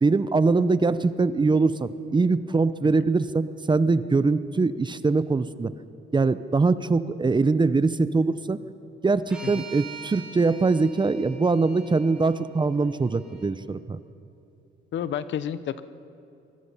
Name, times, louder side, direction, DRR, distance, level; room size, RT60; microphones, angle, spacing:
voice 1, 0.0-5.7 6.1-8.6 9.0-14.0, right 3 dB, 25° right, 14 dB, 0.8 m, -22 dB
sound 1, 9.3-13.5, right 5 dB, 5° right, 5.3 m, -44 dB
voice 2, 14.9-15.8, left 9 dB, 70° left, 14 dB, 0.9 m, -30 dB
24.5 x 21.0 x 5.6 m, 2.7 s
cardioid pair, 90°, 20 cm